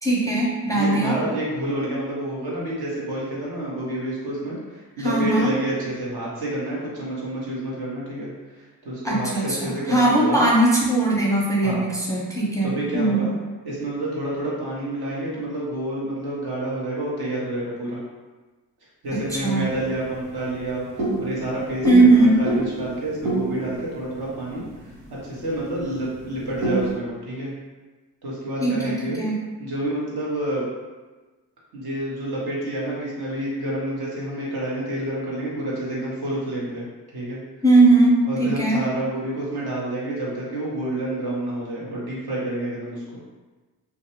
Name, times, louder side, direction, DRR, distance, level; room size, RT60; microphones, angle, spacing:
voice 1, 0.0-1.2 5.0-5.5 9.0-13.3 19.4-19.7 21.8-22.3 28.6-28.9 29.2-29.4 37.6-38.8, right 2 dB, 10° left, -5 dB, 0.6 m, -19 dB
voice 2, 0.7-10.4 11.6-11.9 12.6-13.3 13.6-18.0 19.0-27.5 28.2-29.2 29.6-30.7 31.7-36.8 37.1-37.4 38.2-43.0, right 1 dB, 60° right, -5 dB, 1.1 m, -29 dB
sound 1, 19.1-27.0, right 2 dB, 75° right, 1.2 m, -30 dB
2.5 x 2.2 x 2.9 m, 1.3 s
supercardioid pair, 60°, 44 cm